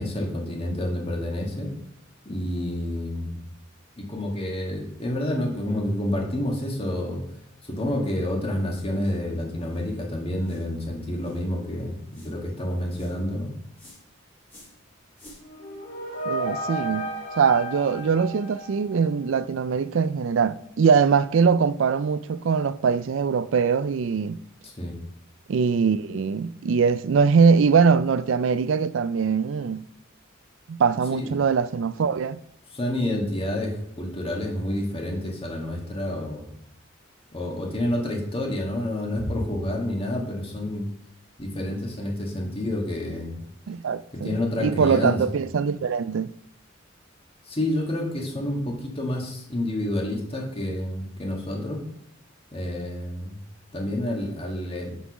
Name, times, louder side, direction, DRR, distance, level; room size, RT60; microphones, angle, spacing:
voice 1, 0.0-1.7 2.3-3.4 4.0-7.2 7.6-13.5 24.6-25.0 31.1-31.4 32.7-36.5 37.3-40.9 41.4-43.4 44.1-45.3 47.4-51.8 52.5-53.4 53.7-55.0, left 1 dB, 30° left, 1.7 m, -29 dB
sound 1, 9.0-9.2 9.7-9.9 10.4-10.7 11.2-11.4 12.1-12.4 12.9-13.2 13.7-14.0 14.5-14.8 15.1-15.4, left 1 dB, 10° left, 2.4 m, -51 dB
sound 2, 15.4-19.3, right 1 dB, 70° left, 2.9 m, -33 dB
voice 2, 16.3-17.1 17.4-24.4 25.5-29.8 30.7-32.4 43.7-46.3, right 6 dB, 65° right, 0.4 m, -22 dB
6.1 x 5.7 x 6.0 m
head